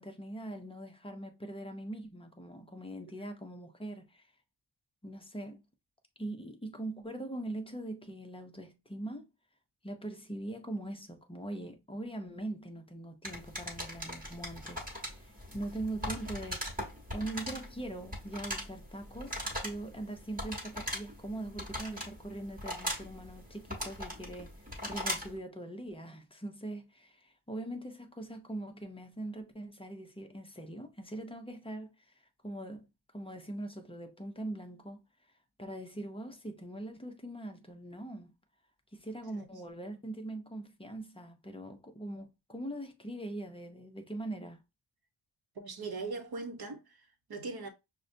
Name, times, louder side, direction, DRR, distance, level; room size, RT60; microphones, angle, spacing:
voice 1, 0.0-4.3 5.0-5.6 6.2-9.3 9.8-16.8 17.1-24.5 24.8-32.9 33.1-35.0 35.6-38.3 38.9-44.6, right 1 dB, 10° left, 0.5 m, -42 dB
sound 1, 13.2-25.4, equal, 20° right, 1.2 m, -40 dB
voice 2, 45.5-47.7, right 3 dB, 55° right, 0.9 m, -40 dB
6.2 x 2.2 x 2.6 m
wide cardioid pair, 175°, 46 cm